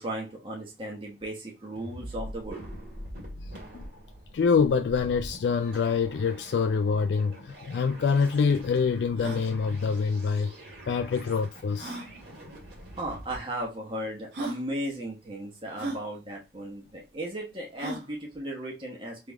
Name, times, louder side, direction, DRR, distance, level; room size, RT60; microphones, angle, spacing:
voice 1, 0.0-2.6 13.0-19.2, right 1 dB, 30° right, 1.2 m, -36 dB
sound 1, 1.8-13.4, equal, 60° right, 1.9 m, -44 dB
voice 2, 3.4-3.9 4.3-10.5 10.9-12.0, left 5 dB, 75° left, 0.3 m, -26 dB
sound 2, 7.6-7.7 7.9-8.0 8.5-8.6 9.1-9.4 10.8-10.9 11.8-12.1 13.1-13.2 13.9-14.0 14.3-14.6 15.8-16.0 17.8-18.1, right 2 dB, 75° right, 1.5 m, -36 dB
3.5 x 3.4 x 3.6 m
head